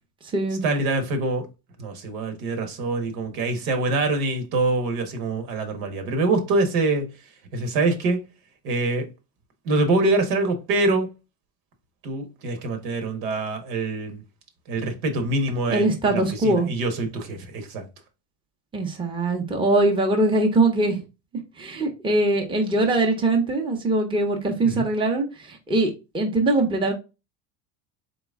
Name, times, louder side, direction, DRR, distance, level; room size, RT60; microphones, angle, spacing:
voice 1, 0.6-1.5 1.8-7.1 7.5-8.2 8.6-9.0 9.6-11.1 12.0-14.2 14.7-17.8 24.6-24.9, right 2 dB, 80° right, 1.4 m, -25 dB
voice 2, 15.7-16.7 18.7-21.0 21.6-26.9, right 2 dB, 10° right, 0.8 m, -22 dB
4.0 x 3.0 x 3.5 m
supercardioid pair, 130°, 43 cm